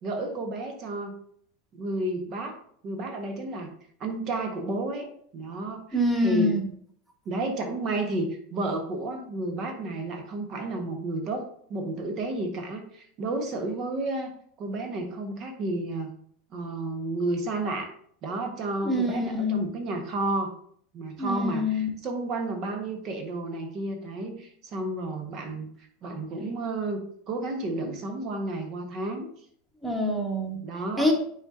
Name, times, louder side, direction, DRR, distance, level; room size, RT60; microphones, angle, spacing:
voice 1, 0.0-1.1 1.7-2.6 2.8-3.7 4.0-5.1 5.3-6.0 6.2-6.5 7.2-11.4 11.7-14.3 14.6-16.1 16.5-17.9 18.2-20.5 20.9-25.7 26.0-27.0 27.3-29.3 30.6-31.1, right 2 dB, 40° right, 4 dB, 1.4 m, -31 dB
voice 2, 5.9-6.6 18.8-19.6 21.2-21.9 29.8-30.6 31.0-31.1, left 1 dB, 10° right, 1 dB, 1.6 m, -25 dB
9.7 x 4.2 x 2.8 m, 0.62 s
figure-of-eight pair, 80°, 0 cm